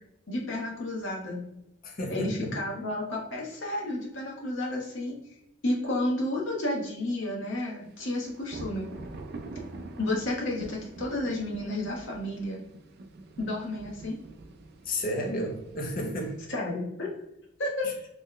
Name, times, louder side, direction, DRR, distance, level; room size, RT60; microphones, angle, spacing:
voice 1, 0.3-1.4 2.1-5.1 5.6-8.9 10.0-12.6 13.4-14.2 16.5-17.1 17.6-17.9, left 1 dB, 60° left, -3 dB, 1.0 m, -31 dB
voice 2, 1.8-2.6 14.8-16.4 17.8-17.9, equal, 40° left, 1 dB, 0.6 m, -32 dB
sound 1, 7.9-16.4, right 2 dB, 50° right, 0.3 m, -45 dB
3.1 x 2.1 x 3.7 m, 0.88 s
head